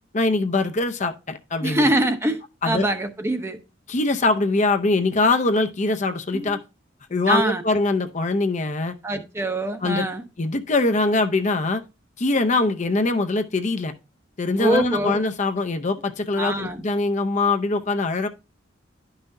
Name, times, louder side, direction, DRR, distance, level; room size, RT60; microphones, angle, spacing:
voice 1, 0.1-1.9 2.6-2.9 3.9-6.6 7.1-8.9 9.8-10.1 10.4-11.8 12.2-13.9 14.4-18.3, left 3 dB, 40° left, 0.6 m, -22 dB
voice 2, 1.6-3.6 6.3-6.6 7.3-7.6 9.0-10.2 14.6-15.2 16.4-16.8, right 1 dB, 15° right, 0.7 m, -24 dB
11.0 x 5.6 x 2.6 m
head